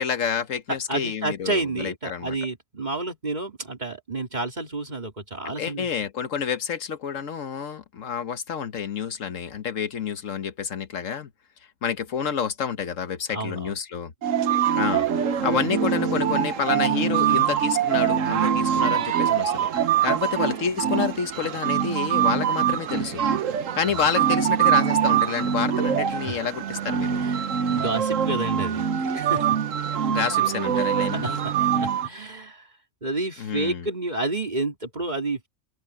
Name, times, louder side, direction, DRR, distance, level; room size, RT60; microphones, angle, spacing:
voice 1, 0.0-2.4 5.4-11.3 11.8-14.1 14.7-15.1 15.4-23.2 23.7-27.3 30.1-31.4 33.4-33.9, left 7 dB, 75° left, 1.5 m, -29 dB
voice 2, 0.7-5.9 13.3-13.7 23.5-24.0 26.3-26.4 27.1-29.5 30.4-30.5 30.8-32.7 33.0-35.5, right 2 dB, 35° right, 2.9 m, -30 dB
sound 1, 14.2-32.1, right 8 dB, 75° right, 1.3 m, -24 dB
open air
omnidirectional pair, 1.4 m